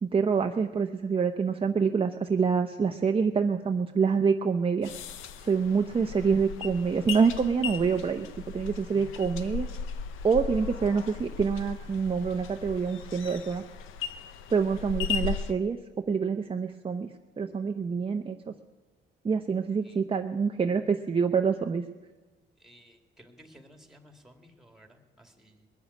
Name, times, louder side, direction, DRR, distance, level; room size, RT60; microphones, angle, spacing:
voice 1, 0.0-4.9 5.4-8.3 8.5-9.7 10.2-13.6 14.5-18.5 19.2-21.8, right 5 dB, 25° right, 5 dB, 0.7 m, -26 dB
sound 1, 4.8-15.5, left 7 dB, 90° left, 0.8 m, -37 dB
voice 2, 22.6-25.7, equal, ahead, 5 dB, 2.3 m, -55 dB
21.0 x 7.1 x 9.6 m, 1.2 s
cardioid pair, 90°, 20 cm